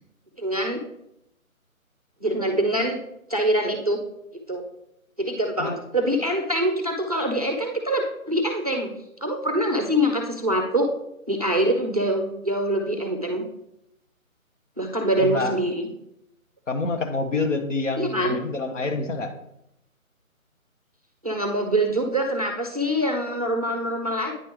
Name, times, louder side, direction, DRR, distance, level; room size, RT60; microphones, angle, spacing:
voice 1, 0.4-0.8 2.2-3.0 3.3-4.0 4.5-4.6 5.2-8.9 9.2-10.9 11.3-13.4 14.8-15.9 18.0-18.4 21.2-24.3, right 1 dB, 30° right, 4 dB, 0.5 m, -24 dB
voice 2, 15.2-15.6 16.7-19.3, left 3 dB, 60° left, 5 dB, 1.1 m, -27 dB
9.1 x 3.2 x 4.7 m, 0.79 s
figure-of-eight pair, 160°, 42 cm